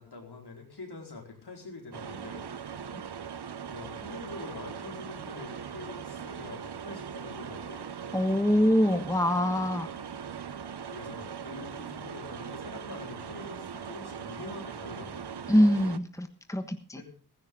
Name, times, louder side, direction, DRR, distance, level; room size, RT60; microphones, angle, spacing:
voice 1, 0.0-2.8 3.7-7.8 10.9-15.4 16.9-17.0, left 3 dB, 75° left, 1 dB, 4.7 m, -45 dB
sound 1, 1.9-16.0, right 7 dB, 75° right, 0.9 m, -40 dB
voice 2, 8.1-9.9 15.5-17.0, equal, 10° left, 8 dB, 1.3 m, -24 dB
15.5 x 15.5 x 3.9 m, 0.39 s
wide cardioid pair, 70°, 40 cm